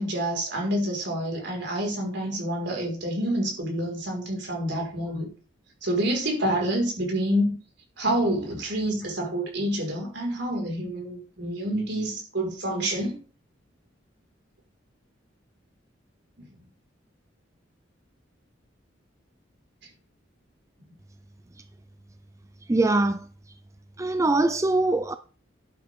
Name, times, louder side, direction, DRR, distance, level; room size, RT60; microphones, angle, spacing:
voice 1, 0.0-5.3 5.8-7.5 8.0-13.2 16.4-16.5, right 1 dB, 65° right, 5.1 m, -28 dB
voice 2, 22.7-23.3 24.0-25.2, right 2 dB, 15° right, 0.5 m, -23 dB
11.5 x 8.8 x 3.7 m
head